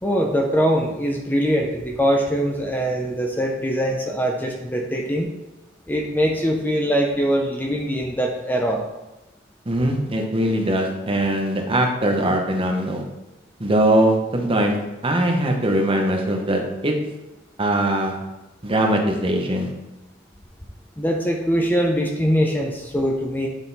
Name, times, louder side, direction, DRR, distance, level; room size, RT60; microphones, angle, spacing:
voice 1, 0.0-5.3 5.9-8.8 21.0-23.5, equal, 10° left, 1 dB, 0.6 m, -22 dB
voice 2, 9.7-13.0 13.6-14.8 15.0-16.9 17.6-18.1 18.6-19.7, right 1 dB, 30° right, 2 dB, 1.0 m, -21 dB
9.0 x 4.0 x 4.1 m, 1.0 s
head